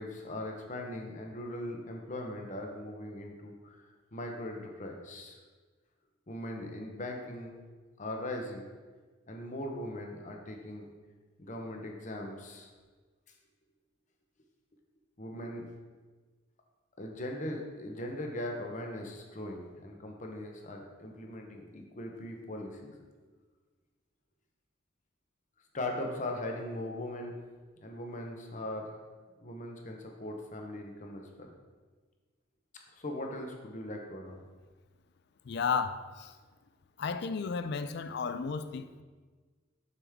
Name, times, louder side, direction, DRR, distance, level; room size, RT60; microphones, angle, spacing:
voice 1, 0.0-3.9 4.1-5.4 6.3-7.5 8.0-8.7 9.3-10.9 11.4-12.7 15.2-15.7 17.0-22.9 25.7-27.4 27.8-28.9 29.4-31.5 32.9-34.4, left 1 dB, 40° left, 0.9 m, -39 dB
voice 2, 35.5-36.3 37.0-39.0, left 5 dB, 55° left, 0.4 m, -33 dB
6.7 x 6.2 x 3.6 m
head